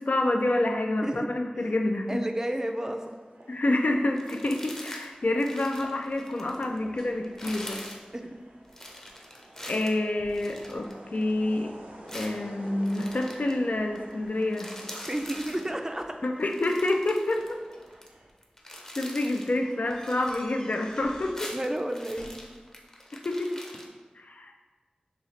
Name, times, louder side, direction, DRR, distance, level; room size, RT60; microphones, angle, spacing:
voice 1, 0.0-2.2 3.5-7.8 9.7-11.7 12.1-14.7 16.2-17.6 19.0-21.5 23.2-23.5 24.2-24.5, left 2 dB, 65° left, 4 dB, 0.4 m, -28 dB
sound 1, 1.6-18.3, right 1 dB, 90° right, 0.6 m, -50 dB
voice 2, 2.1-3.1 4.3-4.4 8.1-8.3 15.0-16.2 21.5-22.3, right 1 dB, 20° right, 5 dB, 0.5 m, -31 dB
sound 2, 4.1-5.1 5.3-6.8 7.2-8.0 8.7-11.3 12.1-13.6 13.9-14.1 14.4-15.7 16.4-18.1 18.4-19.6 19.9-21.0 21.2-23.9, left 1 dB, 20° left, 0.7 m, -43 dB
sound 3, 5.7-9.1 9.5-9.9 10.2-10.9 11.3-12.0 12.6-14.1 15.2-15.3 16.6-18.0 18.5-18.6 18.9-19.0 19.6-21.6 21.9-22.7, equal, 40° left, 1.1 m, -50 dB
6.6 x 2.4 x 3.2 m, 1.4 s
wide cardioid pair, 45°, 3 cm